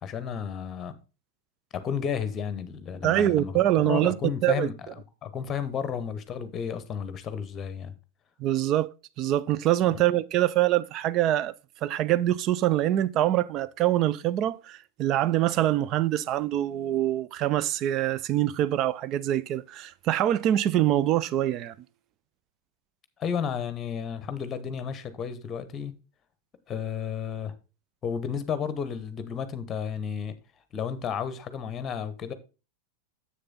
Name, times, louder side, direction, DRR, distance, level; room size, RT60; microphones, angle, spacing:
voice 1, 0.0-1.0 1.7-4.7 5.2-7.9 9.9-10.0 23.2-25.9 26.7-27.5 28.0-30.4 30.7-32.3, left 7 dB, 25° left, 1.1 m, -32 dB
voice 2, 3.0-4.2 4.4-4.7 8.4-8.9 9.2-11.5 11.8-21.7, right 13 dB, 35° right, 0.4 m, -24 dB
7.7 x 6.7 x 3.9 m
figure-of-eight pair, 90°, 0 cm